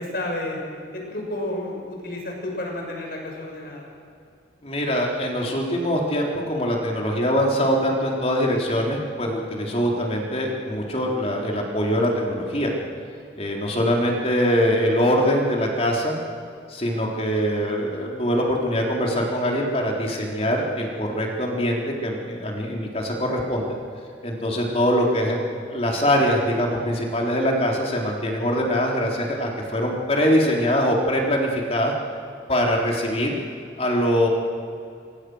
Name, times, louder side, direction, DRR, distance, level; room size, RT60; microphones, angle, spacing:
voice 1, 0.0-3.9, left 1 dB, 55° left, 0 dB, 6.4 m, -31 dB
voice 2, 4.6-12.7 13.4-16.2 16.7-23.7 24.2-25.4 25.7-31.9 32.5-33.3 33.8-34.3, equal, 35° left, 0 dB, 4.1 m, -23 dB
25.5 x 25.0 x 6.6 m, 2.4 s
head